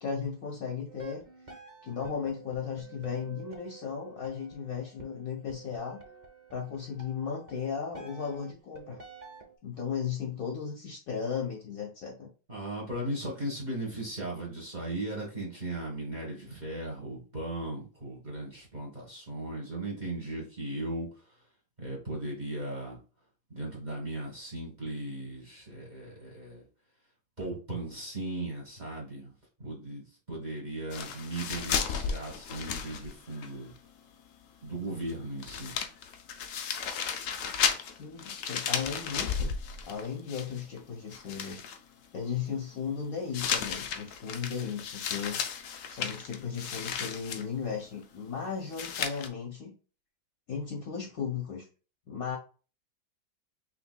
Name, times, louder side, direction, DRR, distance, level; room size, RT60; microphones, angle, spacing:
voice 1, 0.0-1.2 1.8-6.0 6.5-9.0 9.6-12.3 38.0-39.6 39.8-41.6 42.1-45.4 45.9-49.7 50.5-51.6 52.1-52.4, left 6 dB, 55° left, 0 dB, 1.1 m, -36 dB
sound 1, 0.9-9.5, right 4 dB, 60° right, 0.4 m, -49 dB
voice 2, 12.5-21.3 21.8-23.0 23.5-26.6 27.4-29.3 29.6-33.7 34.6-35.8, right 1 dB, 25° right, -2 dB, 1.3 m, -37 dB
sound 2, 30.9-33.5 33.8-33.9 35.1-35.2 35.4-40.8 41.1-41.8 43.3-47.4 48.7-49.3, left 7 dB, 75° left, 0.7 m, -34 dB
5.8 x 3.4 x 2.2 m, 0.35 s
omnidirectional pair, 2.1 m